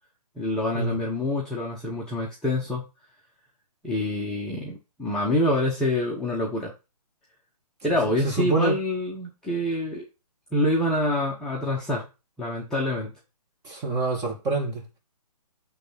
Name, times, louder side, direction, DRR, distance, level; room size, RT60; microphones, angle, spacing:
voice 1, 0.4-2.9 3.8-6.7 7.8-10.0 10.5-12.0 12.4-13.1, left 1 dB, 5° left, 1.0 m, -26 dB
voice 2, 8.2-8.8 13.6-14.8, right 3 dB, 15° right, 2.2 m, -26 dB
8.3 x 3.5 x 5.6 m
hypercardioid pair, 150°, 20 cm